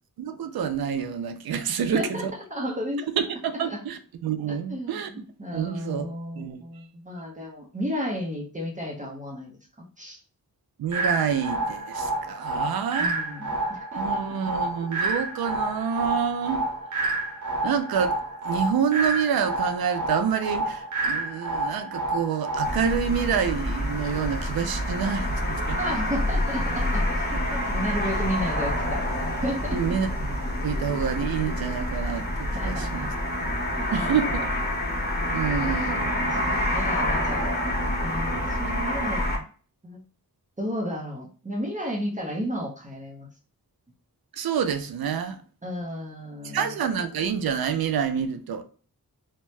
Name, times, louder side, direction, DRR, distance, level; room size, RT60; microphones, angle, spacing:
voice 1, 0.2-2.3 3.2-5.1 5.5-6.1 6.4-6.6 10.8-13.2 13.9-16.6 17.6-18.2 18.4-25.8 29.7-30.4 30.6-33.1 33.9-34.5 35.3-36.1 44.4-45.4 46.5-48.6, right 7 dB, 90° right, 0.5 m, -27 dB
voice 2, 1.7-2.2 2.5-3.1 3.6-3.8 4.7-9.6 10.0-10.2 13.0-14.4 25.8-29.0 29.4-30.0 32.5-33.1 33.8-34.4 35.5-37.7 38.0-39.4 39.8-40.0 40.6-43.3 45.6-46.7, equal, 20° right, 0.7 m, -33 dB
sound 1, 10.9-22.9, right 2 dB, 55° right, 1.0 m, -29 dB
sound 2, 22.6-39.4, left 1 dB, 25° left, 1.0 m, -27 dB
2.7 x 2.2 x 3.1 m
wide cardioid pair, 75°, 35 cm